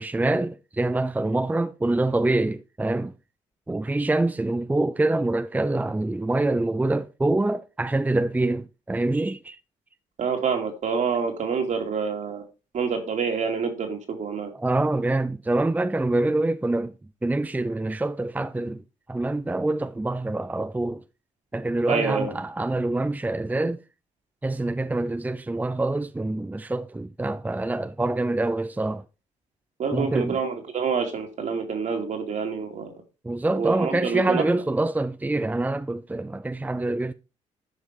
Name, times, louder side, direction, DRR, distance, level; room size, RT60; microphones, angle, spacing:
voice 1, 0.0-3.1 3.7-9.6 14.5-16.9 17.2-21.0 21.5-23.8 24.4-29.0 29.9-30.4 33.2-37.1, right 2 dB, 10° right, 0.6 m, -25 dB
voice 2, 10.2-12.4 12.7-14.5 21.9-22.3 29.8-33.0 33.5-34.6, right 5 dB, 60° right, 2.9 m, -27 dB
9.9 x 5.3 x 4.8 m
supercardioid pair, 60°, 14 cm